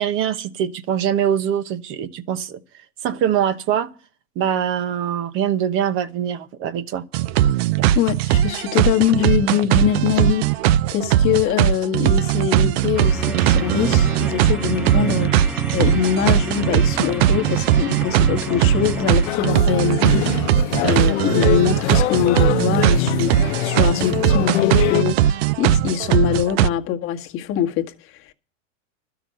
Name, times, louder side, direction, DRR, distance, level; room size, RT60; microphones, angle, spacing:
voice 1, 0.0-2.6 3.0-3.9 4.4-7.0 7.8-7.9, right 9 dB, 30° right, 1.0 m, -23 dB
sound 1, 7.1-26.7, right 11 dB, 50° right, 0.5 m, -19 dB
voice 2, 7.9-10.4 10.9-27.9, left 10 dB, 30° left, 1.5 m, -23 dB
sound 2, 12.9-19.3, right 1 dB, 5° right, 0.5 m, -30 dB
sound 3, 19.3-25.0, left 15 dB, 55° left, 1.0 m, -24 dB
12.5 x 6.0 x 9.6 m
supercardioid pair, 150°, 40 cm